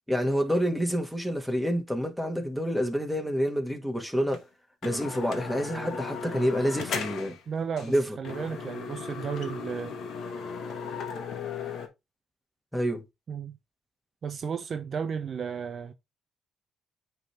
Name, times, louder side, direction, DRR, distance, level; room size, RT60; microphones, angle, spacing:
voice 1, 0.1-4.4 4.8-7.4 7.8-8.2 12.7-13.0, equal, ahead, 1.7 m, -28 dB
sound 1, 4.3-4.4 4.8-7.4 7.8-7.9 8.2-11.9, left 6 dB, 75° left, 1.2 m, -36 dB
voice 2, 7.5-10.0 13.3-13.6 14.2-15.9, right 6 dB, 55° right, 0.7 m, -34 dB
8.7 x 3.5 x 3.3 m
cardioid pair, 75°, 0 cm